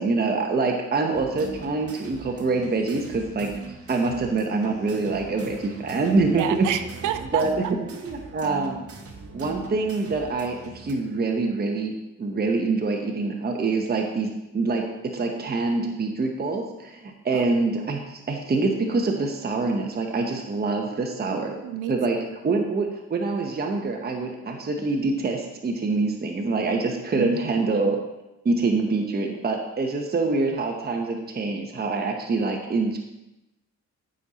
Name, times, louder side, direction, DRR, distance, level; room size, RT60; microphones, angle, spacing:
voice 1, 0.0-6.7 7.3-8.8 9.3-14.8 15.1-21.6 21.9-22.2 22.4-28.0 28.4-33.0, right 3 dB, 30° right, 3 dB, 1.1 m, -25 dB
sound 1, 1.1-10.9, right 4 dB, 50° right, 1.6 m, -41 dB
voice 2, 6.4-7.4 17.3-17.4 21.6-21.9 22.4-22.6 27.1-27.3, right 11 dB, 85° right, 9 dB, 0.7 m, -29 dB
14.0 x 5.5 x 4.3 m, 0.97 s
cardioid pair, 90°, 30 cm